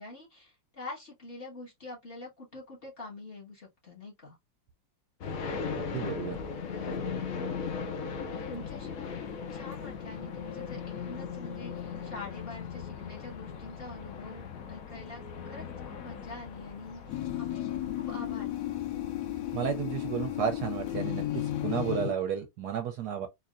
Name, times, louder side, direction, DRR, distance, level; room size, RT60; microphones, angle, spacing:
voice 1, 0.0-4.4 6.5-7.0 8.3-18.5, left 2 dB, 35° left, 1.5 m, -45 dB
sound 1, 5.2-22.0, left 6 dB, 60° left, 1.0 m, -39 dB
voice 2, 5.8-6.4 19.5-23.3, right 8 dB, 70° right, 1.0 m, -32 dB
sound 2, 17.1-22.1, left 13 dB, 75° left, 1.2 m, -33 dB
4.1 x 2.8 x 2.4 m
omnidirectional pair, 2.0 m